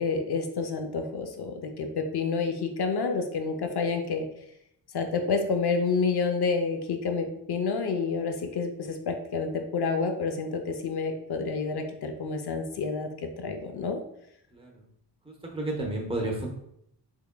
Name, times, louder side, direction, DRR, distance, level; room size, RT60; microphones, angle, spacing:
voice 1, 0.0-4.3 4.9-14.0, left 4 dB, 70° left, 5 dB, 0.6 m, -29 dB
voice 2, 15.3-16.5, right 2 dB, 15° right, 0 dB, 0.8 m, -31 dB
3.6 x 3.3 x 2.2 m, 0.74 s
wide cardioid pair, 105°, 41 cm